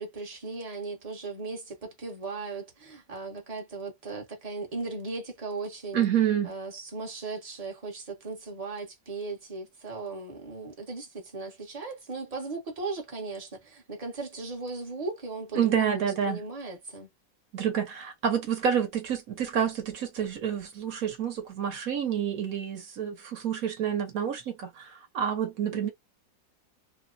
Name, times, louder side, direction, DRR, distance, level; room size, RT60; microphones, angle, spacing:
voice 1, 0.0-6.1 6.4-17.1 25.7-25.9, right 3 dB, 30° right, 0.7 m, -37 dB
voice 2, 5.9-6.5 15.5-16.4 17.5-25.9, right 8 dB, 60° right, 1.1 m, -28 dB
3.1 x 2.0 x 2.4 m
omnidirectional pair, 2.0 m